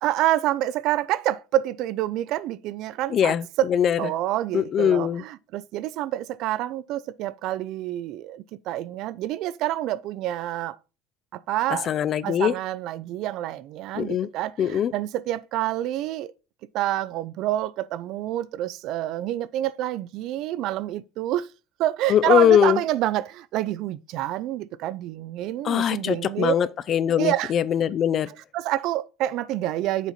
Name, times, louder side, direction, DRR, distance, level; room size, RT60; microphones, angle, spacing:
voice 1, 0.0-3.7 4.0-10.8 11.3-11.9 12.2-16.3 16.7-21.5 21.8-26.5 27.2-27.5 28.3-30.1, right 14 dB, 55° right, 0.3 m, -27 dB
voice 2, 3.1-3.4 3.7-4.0 4.5-5.2 11.9-12.5 14.0-14.3 14.6-14.9 22.1-22.8 25.6-28.3, left 9 dB, 35° left, 0.3 m, -21 dB
7.0 x 4.0 x 4.2 m
cardioid pair, 145°, 0 cm